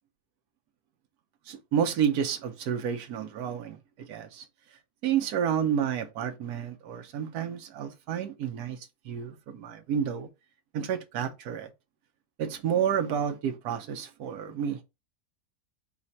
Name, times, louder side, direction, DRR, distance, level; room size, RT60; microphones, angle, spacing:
voice 1, 1.5-3.8 4.1-4.5 5.0-10.3 10.7-11.7 12.4-14.8, right 8 dB, 75° right, 1.3 m, -30 dB
4.2 x 2.5 x 4.1 m
omnidirectional pair, 1.7 m